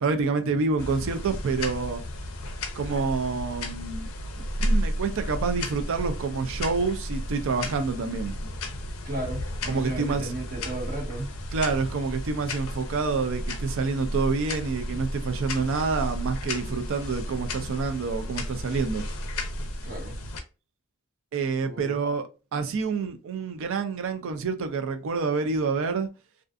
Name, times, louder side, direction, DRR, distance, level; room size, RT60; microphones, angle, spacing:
voice 1, 0.0-2.0 2.7-4.1 4.6-8.3 9.7-10.2 11.5-19.0 21.3-26.1, right 4 dB, 60° right, 0.4 m, -28 dB
sound 1, 0.8-20.4, equal, 65° left, 0.5 m, -33 dB
voice 2, 9.0-11.3 19.8-20.1 21.6-22.0, right 1 dB, 40° right, 1.2 m, -34 dB
2.4 x 2.4 x 2.4 m
head